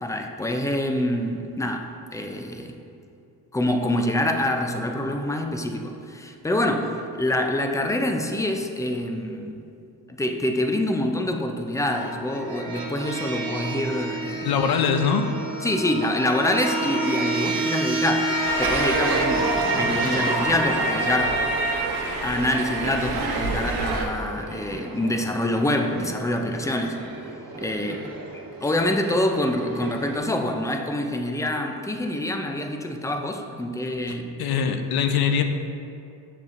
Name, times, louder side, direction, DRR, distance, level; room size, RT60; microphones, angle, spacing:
voice 1, 0.0-2.8 3.5-9.6 10.1-14.5 15.6-21.4 22.2-27.0 27.6-34.4 34.6-34.8, left 1 dB, 10° left, 4 dB, 0.3 m, -26 dB
sound 1, 11.9-30.2, right 2 dB, 65° right, 1.1 m, -30 dB
voice 2, 14.4-15.3 34.4-35.4, left 7 dB, 75° left, 6 dB, 0.6 m, -22 dB
sound 2, 18.4-24.0, right 2 dB, 80° right, 0.8 m, -26 dB
7.0 x 6.6 x 2.5 m, 2.6 s
cardioid pair, 120°, 38 cm